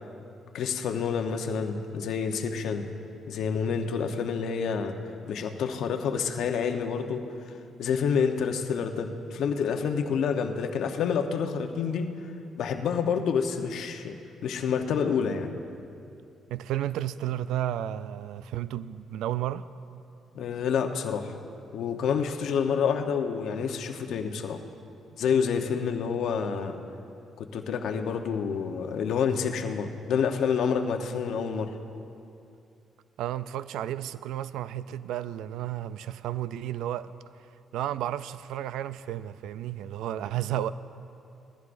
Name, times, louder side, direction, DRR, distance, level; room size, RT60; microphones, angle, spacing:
voice 1, 0.5-2.9 3.3-4.9 5.2-7.2 7.8-12.1 12.6-15.5 20.3-21.3 21.7-24.6 25.2-26.8 27.4-31.7, left 6 dB, 75° left, 0.9 m, -28 dB
voice 2, 16.5-19.6 33.2-37.1 37.7-40.7, right 12 dB, 90° right, 0.3 m, -32 dB
20.5 x 14.5 x 2.6 m
cardioid pair, 90°, 0 cm